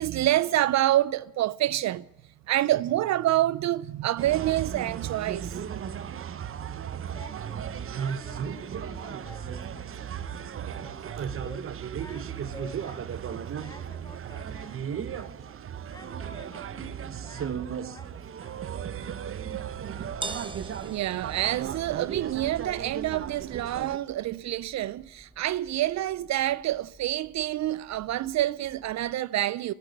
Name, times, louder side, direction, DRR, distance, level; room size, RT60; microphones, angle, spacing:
voice 1, 0.0-2.0 2.5-5.6 20.8-29.7, right 14 dB, 65° right, 0.5 m, -27 dB
sound 1, 4.2-24.0, right 8 dB, 45° right, 0.8 m, -35 dB
voice 2, 6.6-15.7 15.9-18.7, left 1 dB, 10° left, 1.8 m, -50 dB
sound 2, 19.1-29.1, right 3 dB, 15° right, 0.9 m, -46 dB
13.5 x 10.5 x 9.2 m
cardioid pair, 90°, 30 cm